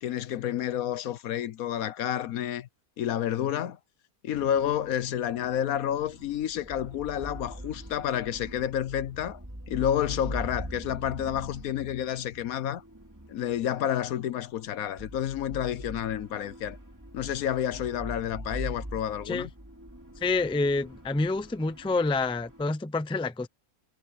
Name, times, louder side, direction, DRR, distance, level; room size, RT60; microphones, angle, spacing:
voice 1, 0.0-2.7 3.0-3.8 4.2-9.4 9.7-12.8 13.3-16.8 17.1-19.5, left 10 dB, 70° left, 1.2 m, -30 dB
sound 1, 4.3-22.7, right 1 dB, 10° right, 2.9 m, -43 dB
voice 2, 20.2-23.5, left 3 dB, 5° left, 0.5 m, -28 dB
omnidirectional pair, 1.6 m